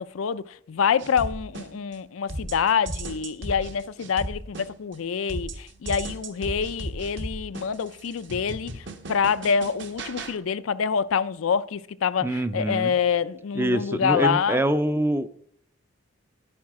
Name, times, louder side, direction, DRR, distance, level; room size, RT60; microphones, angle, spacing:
voice 1, 0.0-14.6, left 6 dB, 85° left, 0.4 m, -26 dB
sound 1, 1.0-2.0 2.3-5.0 5.3-10.3, right 1 dB, 60° right, 1.3 m, -36 dB
voice 2, 12.2-12.9 13.5-15.3, right 1 dB, 10° right, 0.4 m, -25 dB
10.5 x 8.7 x 4.7 m
head